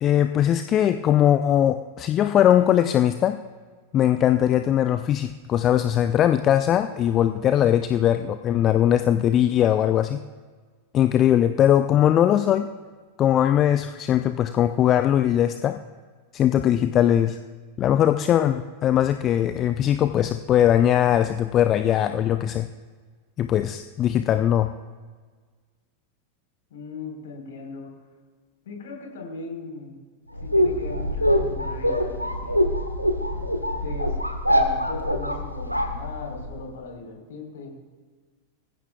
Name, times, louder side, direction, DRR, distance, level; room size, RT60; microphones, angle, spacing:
voice 1, 0.0-3.4 3.9-10.2 10.9-12.7 13.2-15.8 16.3-17.4 17.8-22.7 23.4-24.7, left 10 dB, 30° left, 10 dB, 0.5 m, -20 dB
voice 2, 26.7-27.9 28.7-30.0 30.4-32.7 33.8-34.2 34.5-37.7, left 4 dB, 60° left, 1 dB, 4.0 m, -38 dB
sound 1, 30.3-36.6, equal, 90° right, 1.3 m, -24 dB
23.5 x 15.0 x 2.3 m, 1.5 s
figure-of-eight pair, 90°, 0 cm